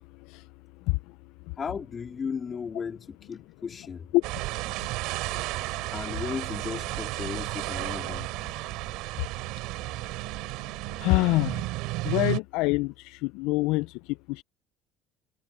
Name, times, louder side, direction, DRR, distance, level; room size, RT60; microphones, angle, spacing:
voice 1, 1.6-4.1 5.9-8.3, left 6 dB, 35° left, 4.1 m, -35 dB
sound 1, 4.2-12.4, right 21 dB, 70° right, 3.5 m, -33 dB
voice 2, 11.0-11.5 12.0-12.9 13.2-13.9 14.4-14.5, left 22 dB, 70° left, 0.8 m, -24 dB
hypercardioid pair, 65°, 0 cm